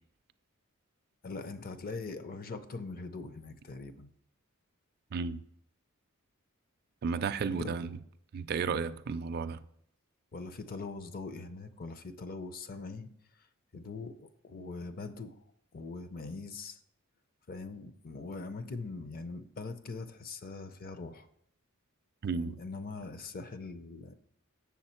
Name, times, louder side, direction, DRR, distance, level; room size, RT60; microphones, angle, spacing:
voice 1, 1.2-4.1 7.4-7.7 10.3-13.1 13.3-13.5 13.7-15.4 15.7-16.8 17.5-21.3 22.3-24.1, left 3 dB, 45° left, 0.6 m, -42 dB
voice 2, 5.1-5.4 7.0-7.9 8.3-9.6 22.2-22.6, right 5 dB, 45° right, 0.4 m, -33 dB
7.1 x 6.9 x 4.3 m
head